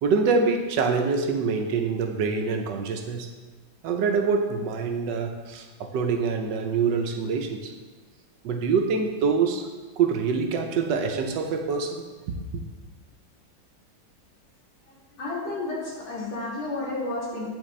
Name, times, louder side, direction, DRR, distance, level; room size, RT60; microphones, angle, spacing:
voice 1, 0.0-3.3 3.8-7.7 8.4-9.6 10.0-12.6, right 5 dB, 75° right, 4 dB, 1.2 m, -25 dB
voice 2, 15.1-17.4, left 2 dB, 85° left, -8 dB, 2.9 m, -31 dB
8.8 x 4.3 x 3.2 m, 1.3 s
omnidirectional pair, 2.0 m